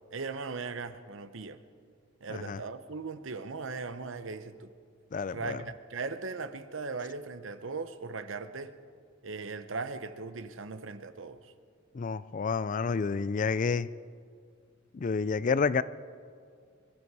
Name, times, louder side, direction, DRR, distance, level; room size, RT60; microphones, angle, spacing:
voice 1, 0.1-1.6 2.2-4.7 5.3-8.7 9.2-11.5, right 4 dB, 70° right, 11 dB, 0.8 m, -38 dB
voice 2, 5.1-5.6 11.9-13.9 14.9-15.8, left 5 dB, 40° left, 17 dB, 0.4 m, -29 dB
24.0 x 12.5 x 4.8 m, 2.2 s
head